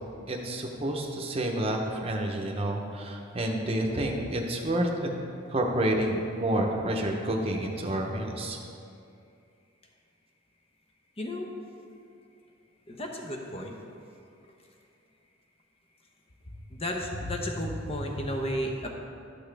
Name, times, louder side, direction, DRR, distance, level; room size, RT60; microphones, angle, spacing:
voice 1, 0.3-5.1 5.5-8.6, right 1 dB, 30° right, 1 dB, 0.9 m, -29 dB
voice 2, 11.2-11.5 12.9-13.8 16.7-18.9, equal, 30° left, 1 dB, 0.9 m, -33 dB
12.0 x 6.0 x 3.4 m, 2.5 s
head